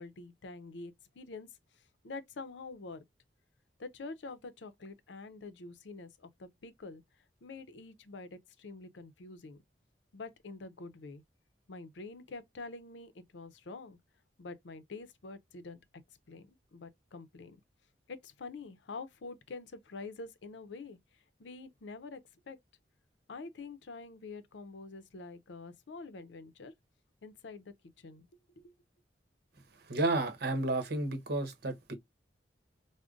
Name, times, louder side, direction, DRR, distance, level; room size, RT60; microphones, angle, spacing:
voice 1, 0.0-1.5 1.7-3.0 3.8-7.0 7.4-9.6 10.1-11.2 11.7-14.0 14.4-15.8 16.3-17.6 18.1-21.0 21.4-22.6 23.3-26.7 27.2-28.3 28.6-28.7, left 3 dB, 90° left, 0.5 m, -46 dB
voice 2, 29.9-32.0, right 2 dB, 65° right, 0.9 m, -32 dB
5.0 x 2.1 x 2.4 m
head